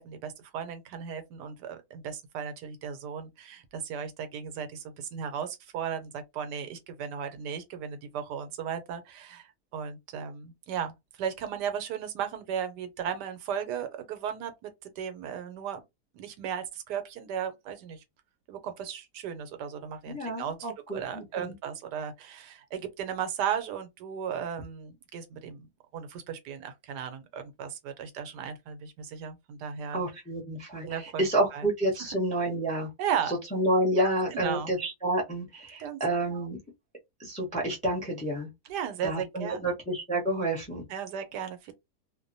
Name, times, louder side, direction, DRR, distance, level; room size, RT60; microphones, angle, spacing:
voice 1, 0.0-15.8 16.1-18.0 18.5-20.7 20.9-30.0 30.8-31.2 31.5-31.7 33.0-33.4 34.3-34.7 35.8-36.0 36.3-36.5 38.7-39.7 40.9-41.7, right 8 dB, 90° right, 1.2 m, -36 dB
voice 2, 20.1-21.5 29.9-32.9 33.3-36.6 37.2-38.5 39.0-40.8, right 1 dB, 10° left, 0.5 m, -29 dB
2.8 x 2.1 x 2.6 m
omnidirectional pair, 1.8 m